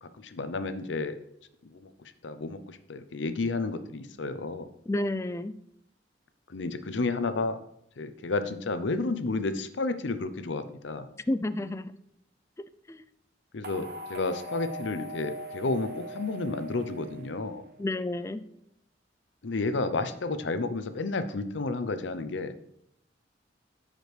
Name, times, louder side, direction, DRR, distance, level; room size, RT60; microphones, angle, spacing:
voice 1, 0.0-1.2 1.7-1.9 2.2-4.7 6.5-7.6 8.0-11.1 13.5-17.6 19.4-22.5, left 3 dB, 75° left, 11 dB, 0.6 m, -31 dB
voice 2, 4.9-5.5 11.3-11.9 12.6-13.0 17.8-18.4, left 1 dB, 15° left, 13 dB, 0.3 m, -31 dB
sound 1, 13.6-17.9, equal, 55° right, 0.8 m, -41 dB
13.5 x 5.0 x 3.3 m, 0.76 s
head